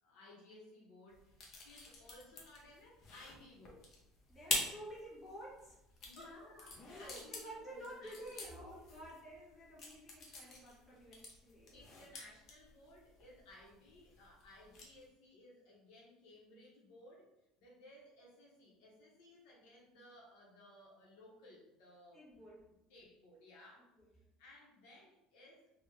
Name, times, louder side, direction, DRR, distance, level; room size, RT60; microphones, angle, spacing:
voice 1, 0.0-3.9 6.0-6.7 7.0-9.1 11.7-17.3 17.6-22.4 22.9-23.9 24.4-25.8, left 1 dB, 75° left, -3 dB, 1.0 m, -59 dB
sound 1, 1.1-15.1, left 3 dB, 40° left, 0.7 m, -46 dB
voice 2, 4.3-5.8 6.2-6.5 6.9-11.8 22.1-22.7, right 1 dB, 10° left, -7 dB, 1.3 m, -51 dB
3.4 x 2.3 x 3.2 m, 0.87 s
cardioid pair, 150°, 0 cm